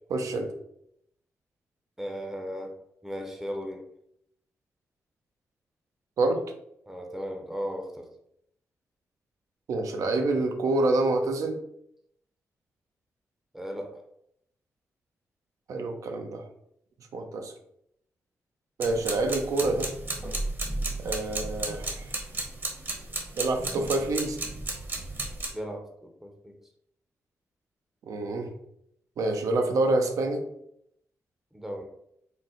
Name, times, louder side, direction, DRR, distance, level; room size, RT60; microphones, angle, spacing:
voice 1, 0.1-0.5 6.2-6.4 9.7-11.6 15.7-16.4 17.1-17.5 18.8-19.9 21.0-22.1 23.4-24.4 28.1-28.5 29.2-30.4, right 2 dB, 75° right, 5 dB, 0.6 m, -27 dB
voice 2, 2.0-2.7 3.0-3.8 6.9-8.1 13.5-14.0 25.5-26.6 31.5-31.9, equal, 5° right, 3 dB, 0.6 m, -36 dB
sound 1, 18.8-25.5, right 2 dB, 40° right, 0.9 m, -34 dB
4.1 x 2.1 x 3.8 m, 0.75 s
cardioid pair, 80°, 6 cm